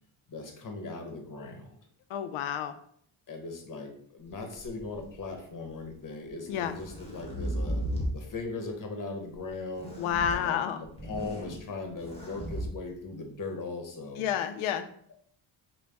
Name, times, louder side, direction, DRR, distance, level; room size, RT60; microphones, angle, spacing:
voice 1, 0.3-1.8 3.3-7.8 8.1-9.9 10.3-14.2, left 3 dB, 40° left, 4 dB, 1.0 m, -39 dB
voice 2, 2.1-2.7 6.5-6.8 10.0-10.8 14.2-14.9, left 9 dB, 85° left, 10 dB, 0.6 m, -30 dB
sound 1, 4.6-5.4 6.3-8.2 9.7-10.4 10.8-11.6 12.0-12.7, equal, 15° left, 1.3 m, -35 dB
5.1 x 2.3 x 3.4 m, 0.62 s
cardioid pair, 80°, 47 cm